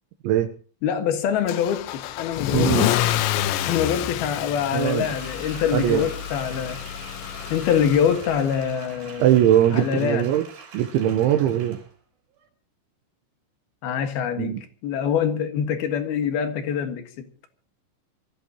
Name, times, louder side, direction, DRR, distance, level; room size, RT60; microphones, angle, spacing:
voice 1, 0.8-2.7 3.6-6.8 7.5-9.4 9.7-10.3 13.8-14.5 14.8-17.3, left 8 dB, 65° left, 3.0 m, -24 dB
Car / Engine starting / Accelerating revving vroom, 1.5-8.6, left 13 dB, 80° left, 3.0 m, -28 dB
voice 2, 2.5-2.9 4.7-5.0 5.7-6.1 9.2-10.4 10.7-11.8 14.4-14.6, right 11 dB, 80° right, 3.3 m, -20 dB
Applause, 4.8-11.9 12.4-12.5, right 6 dB, 60° right, 6.2 m, -44 dB
25.0 x 15.0 x 2.9 m
omnidirectional pair, 5.6 m